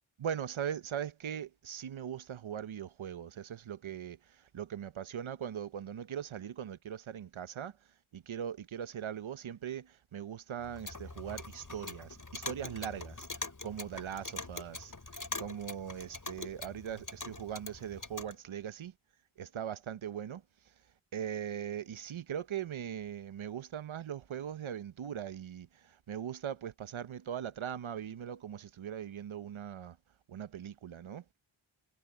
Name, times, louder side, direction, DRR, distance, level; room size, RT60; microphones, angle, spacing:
voice 1, 0.2-7.8 8.1-13.3 13.6-14.9 15.4-18.9 19.4-20.4 21.1-30.0 30.3-31.4, right 9 dB, 75° right, 1.0 m, -40 dB
Clock, 10.6-18.3, left 3 dB, 40° left, 6.1 m, -44 dB
wide cardioid pair, 75°, 49 cm